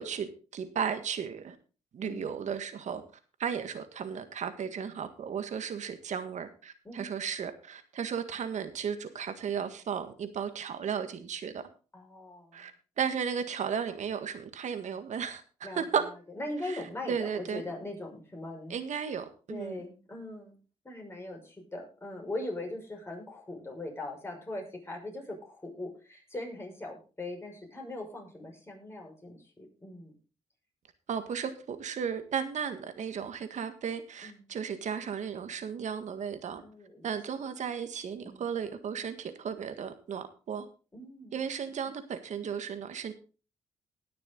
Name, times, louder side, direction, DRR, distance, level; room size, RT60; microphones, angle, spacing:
voice 1, 0.0-1.6 1.9-3.0 3.4-11.6 12.5-12.7 13.0-16.0 16.6-17.6 18.7-19.8 31.1-36.6 37.0-40.7 41.3-43.1, right 7 dB, 65° right, 1.7 m, -35 dB
voice 2, 2.0-2.3 6.8-7.1 11.9-12.6 15.6-15.8 16.4-18.8 19.5-20.6 20.8-30.1 34.2-34.4 36.6-37.1 38.2-38.4 40.9-41.4, left 2 dB, 20° left, 5.9 m, -40 dB
19.5 x 6.8 x 4.0 m
cardioid pair, 90°, 13 cm